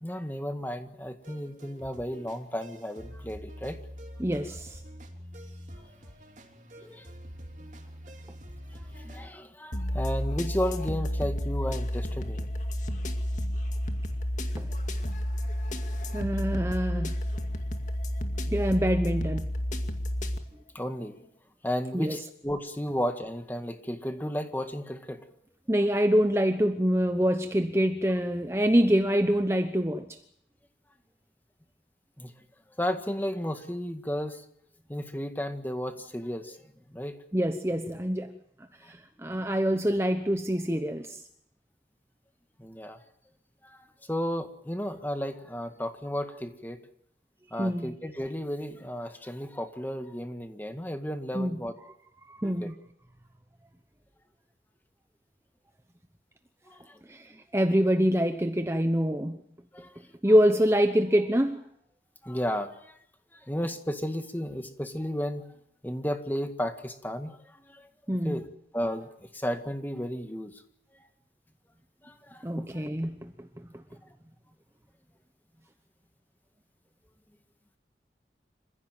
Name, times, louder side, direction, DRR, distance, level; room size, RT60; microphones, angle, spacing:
voice 1, 0.0-3.8 6.8-7.1 8.7-12.5 20.7-21.3 21.6-25.2 32.2-32.3 32.7-34.4 34.9-36.6 36.9-37.2 42.6-43.0 43.6-46.8 47.5-51.7 52.4-52.7 56.7-57.0 59.7-60.0 62.2-63.0 63.3-65.5 65.8-67.9 68.2-68.5 68.7-70.6 72.0-72.9, equal, 10° left, 1.9 m, -33 dB
sound 1, 1.2-9.3, equal, 45° right, 3.0 m, -45 dB
voice 2, 4.2-4.8 14.6-14.7 16.1-17.1 18.5-19.5 21.9-22.2 25.7-30.2 37.3-38.3 38.8-41.2 47.6-47.9 51.3-51.6 52.3-52.7 57.1-59.4 60.2-61.6 68.1-68.4 72.4-73.8, equal, 15° right, 0.9 m, -25 dB
sound 2, 9.7-20.4, equal, 45° left, 2.3 m, -31 dB
27.5 x 15.5 x 9.2 m
head